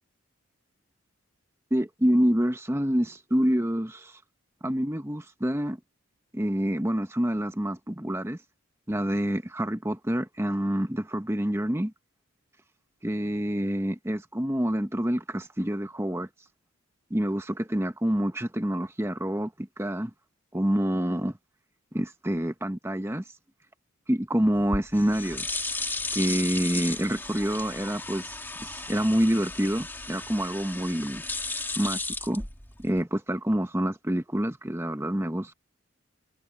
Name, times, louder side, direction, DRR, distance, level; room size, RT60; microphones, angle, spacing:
voice 1, 1.7-4.2 4.6-5.8 6.3-8.4 8.9-11.9 13.0-16.3 17.1-20.1 20.5-21.4 21.9-23.2 24.1-25.5 26.1-31.2 31.8-32.4 32.8-35.5, equal, 10° right, 1.0 m, -27 dB
sound 1, 24.6-33.0, left 3 dB, 10° left, 2.3 m, -35 dB
head